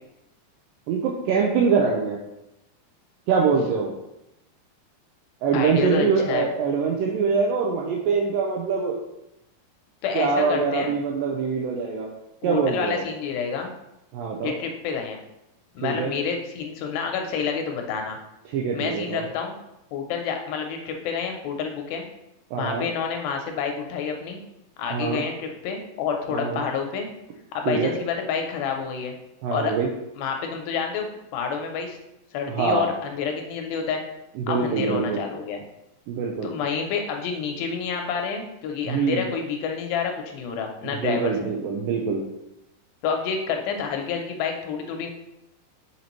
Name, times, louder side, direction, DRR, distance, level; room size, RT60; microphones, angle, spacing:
voice 1, 0.9-2.2 3.3-3.9 5.4-9.0 10.2-12.1 12.4-13.0 14.1-14.5 15.8-16.1 18.5-19.2 22.5-22.9 24.9-25.2 26.3-26.6 27.7-27.9 29.4-29.9 32.5-32.9 34.4-35.2 36.1-36.5 38.8-39.2 40.8-42.2, right 5 dB, 80° right, -1 dB, 2.1 m, -24 dB
voice 2, 5.5-6.5 10.0-10.9 12.4-13.7 14.4-15.2 15.8-18.2 18.7-19.6 19.9-22.0 22.6-24.4 24.8-27.1 27.5-29.2 29.5-29.7 30.2-32.0 32.3-34.0 34.5-35.6 36.4-41.5 43.0-45.1, left 6 dB, 80° left, 3 dB, 2.3 m, -28 dB
5.7 x 5.6 x 3.0 m, 0.88 s
omnidirectional pair, 4.3 m